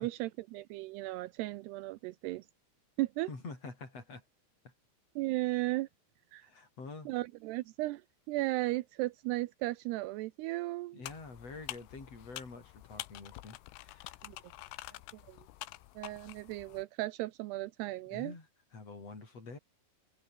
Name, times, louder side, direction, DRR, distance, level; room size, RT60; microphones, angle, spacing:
voice 1, 0.0-2.5 3.0-3.3 5.2-5.9 6.3-6.5 7.1-8.0 8.3-11.0 14.2-14.4 15.3-15.4 16.0-18.3, right 18 dB, 90° right, 2.3 m, -35 dB
voice 2, 3.3-4.2 4.6-4.7 5.5-5.6 6.4-7.1 10.9-14.2 14.6-15.0 18.1-19.6, left 3 dB, 30° left, 6.6 m, -47 dB
sound 1, 11.0-16.8, left 18 dB, 85° left, 3.6 m, -47 dB
omnidirectional pair, 5.6 m